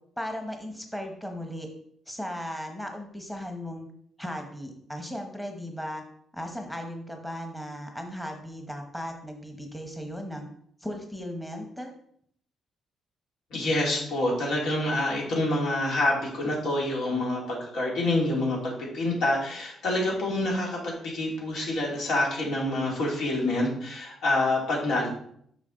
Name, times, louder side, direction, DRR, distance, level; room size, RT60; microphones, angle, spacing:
voice 1, 0.2-1.7 2.1-3.9 4.2-6.0 6.3-10.5 10.8-11.9, equal, 5° left, 3 dB, 1.0 m, -36 dB
voice 2, 13.5-25.1, left 1 dB, 80° left, -3 dB, 2.6 m, -27 dB
5.9 x 5.2 x 3.9 m, 0.67 s
cardioid pair, 90°, 0 cm